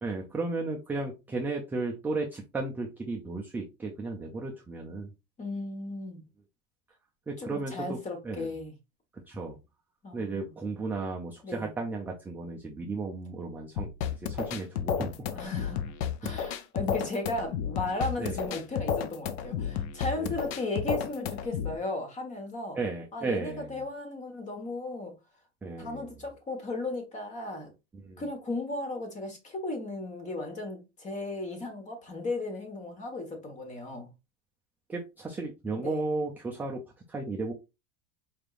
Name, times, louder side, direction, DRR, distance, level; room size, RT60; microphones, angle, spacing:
voice 1, 0.0-5.1 7.3-8.0 8.2-8.5 9.3-9.6 10.1-13.9 14.2-15.4 16.2-16.4 18.2-18.5 20.2-20.4 22.7-23.8 25.6-26.1 27.9-28.2 34.9-36.8 37.1-37.5, right 3 dB, 5° right, 0.3 m, -34 dB
voice 2, 5.4-6.2 7.4-8.7 10.0-10.5 11.4-11.7 15.3-15.9 16.2-22.8 23.1-25.1 25.8-27.7 28.2-34.1 35.8-36.0, left 2 dB, 20° left, 1.3 m, -35 dB
sound 1, 13.8-21.8, left 8 dB, 65° left, 0.6 m, -32 dB
4.6 x 3.4 x 2.5 m
supercardioid pair, 155°, 33 cm